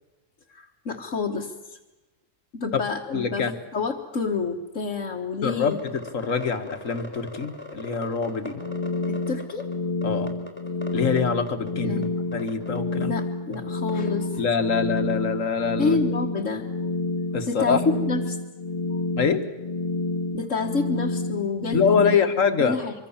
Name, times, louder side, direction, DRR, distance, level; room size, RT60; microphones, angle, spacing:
voice 1, 0.5-1.8 2.5-3.5 3.7-5.8 9.1-9.7 11.8-12.1 13.0-14.4 15.8-16.7 17.5-18.4 18.9-19.0 20.3-22.3 22.6-22.9, left 4 dB, 75° left, -1 dB, 1.9 m, -28 dB
voice 2, 3.1-3.5 5.4-5.8 6.1-8.6 10.0-10.3 10.9-12.1 12.3-13.1 14.4-16.0 17.3-17.8 19.2-19.4 21.7-22.8, left 5 dB, 90° left, 8 dB, 2.0 m, -24 dB
sound 1, 5.6-9.7 10.0-11.2 11.5-12.1 12.3-13.0 13.5-13.6 13.9-14.1 14.5-14.6 15.0-15.1 15.8-15.9, left 2 dB, 10° left, 4.1 m, -39 dB
sound 2, 8.5-22.2, left 2 dB, 30° left, 0.9 m, -29 dB
25.0 x 24.5 x 7.3 m, 1.1 s
omnidirectional pair, 1.3 m